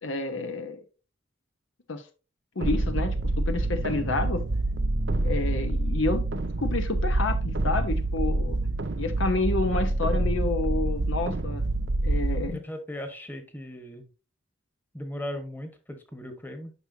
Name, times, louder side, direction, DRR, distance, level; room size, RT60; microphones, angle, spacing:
voice 1, 0.0-0.8 1.9-2.1 2.6-4.4 5.2-6.2 6.6-8.6 9.0-11.6 12.0-12.6, left 3 dB, 70° left, 7 dB, 0.9 m, -29 dB
sound 1, 2.6-12.5, right 2 dB, 60° right, 0.6 m, -27 dB
voice 2, 12.5-14.1 14.9-16.7, left 1 dB, 10° left, 6 dB, 1.2 m, -37 dB
9.7 x 5.9 x 2.7 m, 0.32 s
head